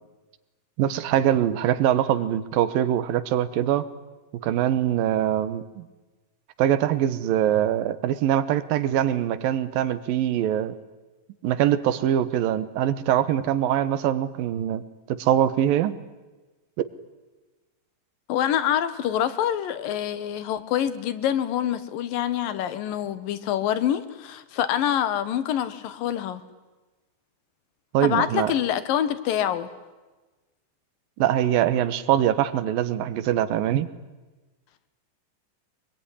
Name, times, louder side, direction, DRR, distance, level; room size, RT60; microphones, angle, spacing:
voice 1, 0.8-3.9 4.4-5.9 6.6-10.8 11.4-14.8 15.1-16.0 27.9-28.5 31.2-33.9, right 11 dB, 80° right, 14 dB, 2.9 m, -23 dB
voice 2, 18.3-26.4 28.0-29.7, left 10 dB, 75° left, 13 dB, 3.0 m, -26 dB
25.0 x 21.5 x 10.0 m, 1.2 s
omnidirectional pair, 4.1 m